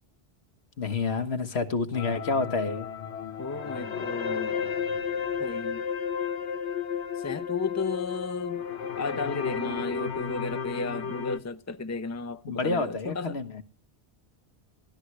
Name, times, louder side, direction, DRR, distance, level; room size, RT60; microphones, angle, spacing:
voice 1, 0.8-2.9 12.4-13.6, left 4 dB, 70° left, 1.5 m, -29 dB
sound 1, 1.9-11.4, left 7 dB, 90° left, 1.4 m, -33 dB
voice 2, 3.4-4.5 5.4-5.9 7.2-8.6 9.0-13.4, left 3 dB, 15° left, 0.7 m, -34 dB
21.0 x 14.5 x 3.2 m
omnidirectional pair, 1.1 m